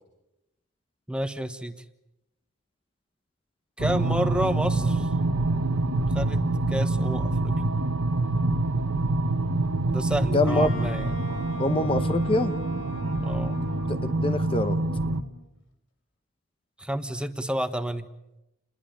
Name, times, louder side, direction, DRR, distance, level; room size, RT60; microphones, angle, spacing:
voice 1, 1.1-1.7 3.8-5.1 6.1-6.4 6.7-7.7 9.9-11.1 13.2-13.6 16.8-18.1, equal, 5° right, 9 dB, 1.2 m, -30 dB
sound 1, 3.8-15.2, right 2 dB, 80° right, 1.2 m, -26 dB
voice 2, 10.3-10.7 11.6-12.6 14.0-14.8, left 2 dB, 25° left, 9 dB, 0.9 m, -24 dB
Wind instrument woodwind instrument, 10.5-15.5, left 1 dB, 70° left, 3.5 m, -40 dB
29.5 x 21.0 x 8.9 m, 0.93 s
head